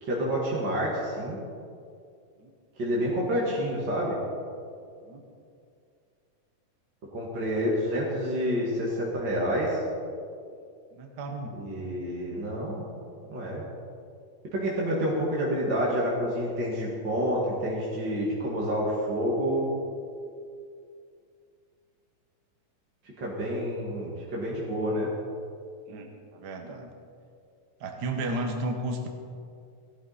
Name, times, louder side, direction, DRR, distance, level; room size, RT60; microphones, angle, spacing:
voice 1, 0.0-1.4 2.8-4.2 7.1-9.8 11.6-12.9 13.3-13.6 14.5-19.7 23.2-25.1, equal, 40° right, -5 dB, 2.2 m, -28 dB
voice 2, 10.9-11.6 25.9-26.9 27.8-29.1, right 1 dB, 60° right, 3 dB, 1.0 m, -33 dB
18.0 x 12.5 x 4.2 m, 2.4 s
omnidirectional pair, 4.0 m